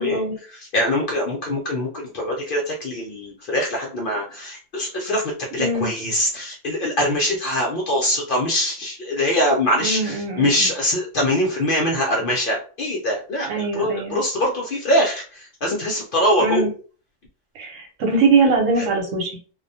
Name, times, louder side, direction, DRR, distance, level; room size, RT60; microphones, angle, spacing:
voice 1, 0.0-0.3 5.6-5.9 9.8-10.7 13.5-14.2 16.4-16.7 17.5-19.4, right 3 dB, 80° right, 1 dB, 1.1 m, -22 dB
voice 2, 0.5-5.2 5.5-16.7 18.8-18.9, left 1 dB, 60° left, -2 dB, 0.6 m, -23 dB
2.3 x 2.1 x 2.6 m, 0.40 s
omnidirectional pair, 1.4 m